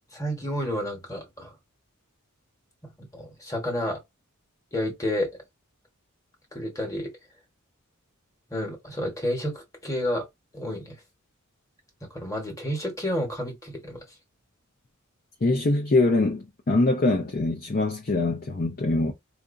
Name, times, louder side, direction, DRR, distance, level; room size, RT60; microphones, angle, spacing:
voice 1, 0.1-1.5 2.8-4.0 4.7-5.3 6.5-7.1 8.5-10.3 10.5-11.0 12.0-14.0, left 1 dB, 15° left, 1.2 m, -30 dB
voice 2, 15.4-19.1, left 2 dB, 40° left, 0.6 m, -23 dB
4.4 x 2.6 x 2.5 m
head